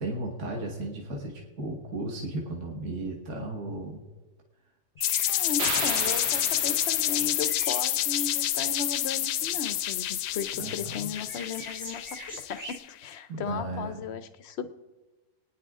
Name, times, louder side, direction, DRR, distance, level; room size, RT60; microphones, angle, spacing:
voice 1, 0.0-4.0 10.6-11.1 13.3-14.0, right 2 dB, 45° right, -1 dB, 1.8 m, -35 dB
sound 1, 5.0-12.8, left 12 dB, 80° left, 1.1 m, -28 dB
sound 2, 5.0-12.8, right 2 dB, 25° right, 0.4 m, -47 dB
voice 2, 5.3-12.0 12.3-14.7, left 7 dB, 60° left, 12 dB, 0.7 m, -36 dB
sound 3, 5.6-7.8, right 6 dB, 80° right, 1.6 m, -35 dB
24.0 x 9.7 x 3.6 m, 1.2 s
omnidirectional pair, 1.8 m